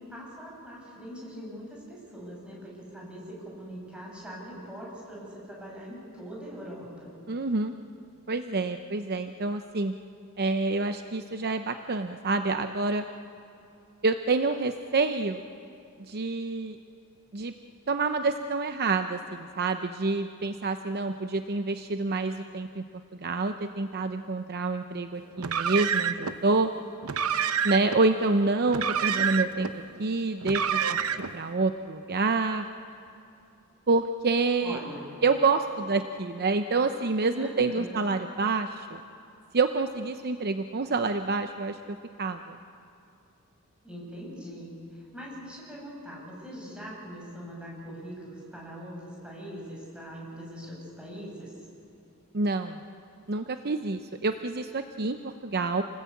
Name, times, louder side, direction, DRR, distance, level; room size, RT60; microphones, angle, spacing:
voice 1, 0.0-7.1 34.6-35.2 37.3-38.1 43.8-51.5, equal, 5° right, -4 dB, 7.5 m, -42 dB
voice 2, 7.3-7.7 8.3-9.9 10.4-13.1 14.0-15.4 16.0-16.8 17.3-17.5 17.9-22.8 23.2-26.7 27.6-29.7 30.0-31.0 31.3-32.7 33.9-34.8 35.2-39.0 39.5-42.6 52.3-52.8 53.3-55.8, right 3 dB, 50° right, 8 dB, 0.8 m, -27 dB
Car, 25.4-26.3 27.0-28.0 28.7-29.7 30.4-31.4, right 7 dB, 75° right, 0.9 m, -28 dB
28.5 x 20.0 x 8.6 m, 2.6 s
head